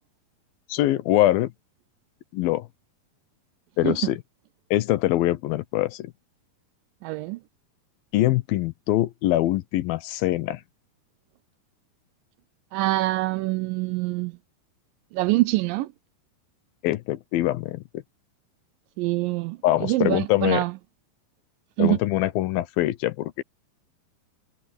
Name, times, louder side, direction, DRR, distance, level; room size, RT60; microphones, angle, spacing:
voice 1, 0.7-1.5 2.3-2.7 3.8-4.2 4.7-6.1 8.1-10.6 16.8-18.0 19.6-20.6 21.8-23.4, left 15 dB, 80° left, 2.6 m, -23 dB
voice 2, 7.0-7.4 12.7-14.4 15.1-15.9 19.0-20.7 21.8-22.0, right 19 dB, 80° right, 2.0 m, -25 dB
omnidirectional pair, 4.3 m